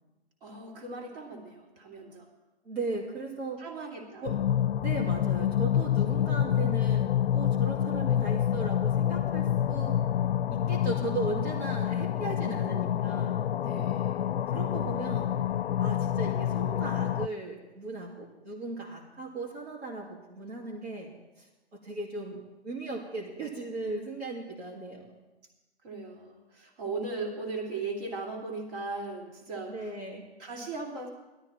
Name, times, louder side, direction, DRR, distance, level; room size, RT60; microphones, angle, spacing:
voice 1, 0.4-2.3 3.6-4.3 6.0-6.3 13.6-14.2 25.8-29.9 30.4-31.1, right 3 dB, 55° right, 0 dB, 3.2 m, -38 dB
voice 2, 2.6-3.6 4.2-4.4 4.8-10.0 10.5-13.4 14.5-15.4 15.8-21.1 21.4-21.5 21.7-25.1 29.7-30.2, right 3 dB, 70° right, -4 dB, 2.8 m, -37 dB
sound 1, 4.3-17.3, left 10 dB, 65° left, 0.5 m, -27 dB
17.0 x 13.0 x 4.4 m, 1.1 s
hypercardioid pair, 130°, 33 cm